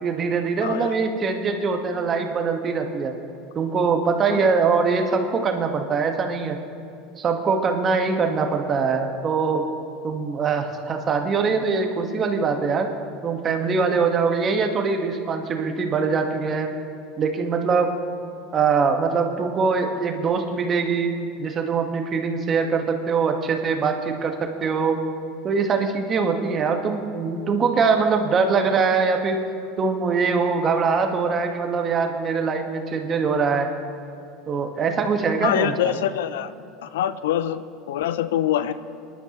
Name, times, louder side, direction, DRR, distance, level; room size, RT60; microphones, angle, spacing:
voice 1, 0.0-3.1 3.5-6.6 7.2-9.7 10.0-12.9 13.2-16.7 17.2-18.0 18.5-25.0 25.4-29.4 29.8-33.7 34.5-35.7, right 5 dB, 35° right, 4 dB, 1.5 m, -23 dB
voice 2, 0.6-0.9 4.3-4.4 35.4-36.5 36.8-38.7, left 11 dB, 75° left, 14 dB, 0.5 m, -25 dB
25.5 x 11.5 x 3.1 m, 2.5 s
hypercardioid pair, 80°, 0 cm